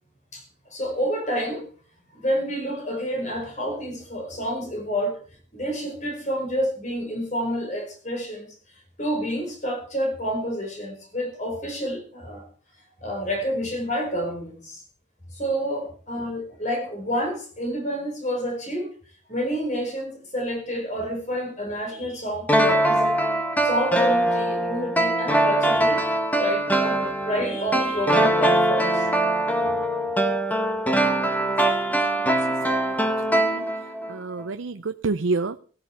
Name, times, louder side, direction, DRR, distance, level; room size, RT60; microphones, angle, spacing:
voice 1, 0.7-1.7 2.1-5.2 5.5-8.5 9.0-12.5 13.0-14.8 15.3-18.9 19.3-23.2 23.6-26.0 26.4-29.1, equal, 40° left, 5.2 m, -28 dB
sound 1, 22.5-34.1 34.4-34.5, right 1 dB, 10° left, 1.6 m, -22 dB
voice 2, 31.4-32.4 32.7-33.7 34.1-35.6, right 3 dB, 90° right, 0.6 m, -30 dB
15.5 x 13.0 x 4.7 m
head